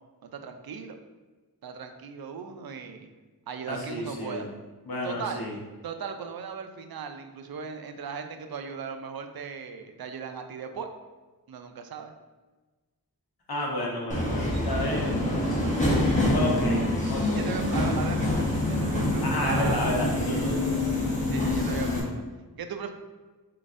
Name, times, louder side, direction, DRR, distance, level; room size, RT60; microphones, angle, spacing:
voice 1, 0.2-1.0 1.6-3.1 3.5-4.5 5.0-5.4 5.8-10.9 11.5-12.1 17.3-19.9 21.3-22.2 22.6-22.9, right 6 dB, 75° right, 7 dB, 0.5 m, -37 dB
voice 2, 3.7-4.5 4.9-5.5 13.5-15.6 16.3-17.6 19.2-20.8, left 1 dB, 85° left, -2 dB, 1.0 m, -31 dB
Subway metro underground, 14.1-22.0, left 1 dB, 20° left, 1.0 m, -26 dB
4.2 x 3.8 x 2.5 m, 1.3 s
wide cardioid pair, 85°, 36 cm